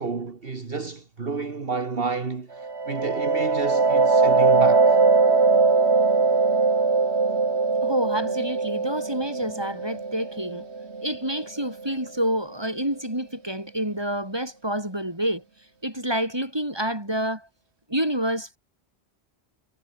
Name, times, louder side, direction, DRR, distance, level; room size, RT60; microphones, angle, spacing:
voice 1, 0.0-5.0, right 4 dB, 60° right, 2.0 m, -30 dB
sound 1, 2.6-12.1, right 4 dB, 80° right, 2.5 m, -21 dB
voice 2, 7.8-10.7 11.0-15.4 15.8-17.5 17.9-18.6, right 1 dB, 20° right, 7.0 m, -28 dB
omnidirectional pair, 1.1 m